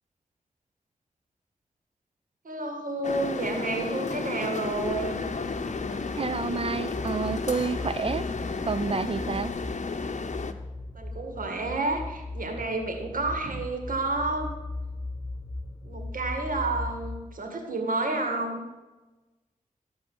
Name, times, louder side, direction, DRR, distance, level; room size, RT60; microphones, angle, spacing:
voice 1, 2.4-5.2 10.9-14.5 15.8-18.6, right 2 dB, 80° right, 3 dB, 2.0 m, -30 dB
sound 1, 3.0-10.5, left 4 dB, 55° left, 0.8 m, -33 dB
sound 2, 4.8-9.2, left 1 dB, 5° right, 2.2 m, -41 dB
voice 2, 6.2-8.2 8.7-9.5, right 5 dB, 45° right, 15 dB, 0.4 m, -29 dB
sound 3, 6.7-17.2, left 2 dB, 15° left, 2.0 m, -38 dB
13.5 x 4.8 x 7.8 m, 1.1 s
cardioid pair, 55°, 14 cm